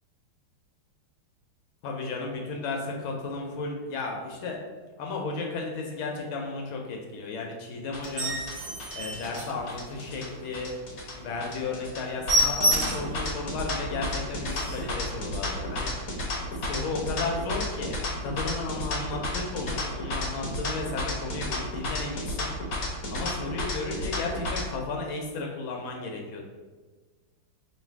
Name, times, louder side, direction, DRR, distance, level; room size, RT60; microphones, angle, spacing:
voice 1, 1.8-4.6 5.0-8.4 8.9-10.7 11.2-15.9 16.4-22.5 23.1-26.4, left 3 dB, 80° left, 0 dB, 1.4 m, -34 dB
sound 1, 7.9-24.6, left 1 dB, 55° left, 1.1 m, -32 dB
sound 2, 8.0-10.2 10.6-10.7 11.1-11.2 11.5-11.6 11.9-13.2 13.7-13.8 14.2-14.3 14.5-15.0 15.7-15.9, equal, 90° right, 0.6 m, -28 dB
3.2 x 2.6 x 4.5 m, 1.4 s
omnidirectional pair, 2.3 m